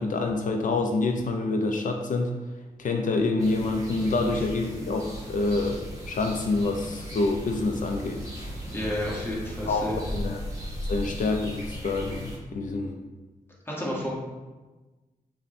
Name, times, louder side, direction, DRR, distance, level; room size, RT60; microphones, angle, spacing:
voice 1, 0.0-2.3 2.8-8.3 9.7-9.8 10.1-10.4 10.9-13.0, left 3 dB, 60° left, 3 dB, 0.4 m, -27 dB
sound 1, 3.4-12.4, equal, 25° right, 1.2 m, -37 dB
voice 2, 8.7-10.0 13.7-14.1, left 1 dB, 15° left, -5 dB, 1.4 m, -31 dB
5.6 x 2.2 x 4.2 m, 1.2 s
cardioid pair, 85°, 15 cm